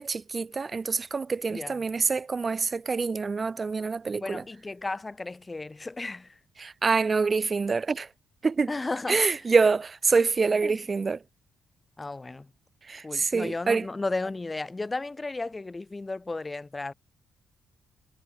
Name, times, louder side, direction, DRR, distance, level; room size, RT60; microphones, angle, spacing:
voice 1, 0.0-4.4 6.6-8.1 8.4-8.7 9.1-11.2 12.8-13.9, right 4 dB, 35° right, 6.0 m, -26 dB
voice 2, 4.2-6.3 8.7-9.2 10.6-10.7 12.0-12.5 13.0-16.9, left 3 dB, 20° left, 6.8 m, -34 dB
cardioid pair, 90°, 0 cm